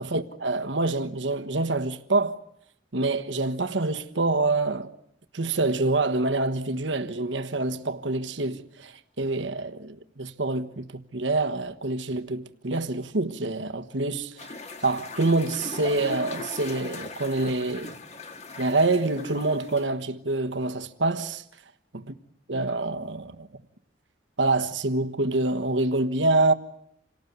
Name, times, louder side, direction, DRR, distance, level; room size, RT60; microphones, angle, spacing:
voice 1, 0.0-2.4 2.9-4.9 5.3-10.9 11.1-14.6 14.8-18.0 18.6-21.4 22.5-23.5 24.4-26.5, right 2 dB, 90° right, 1.3 m, -26 dB
sound 1, 14.4-19.8, left 3 dB, 35° left, 1.8 m, -39 dB
27.5 x 18.5 x 9.4 m
head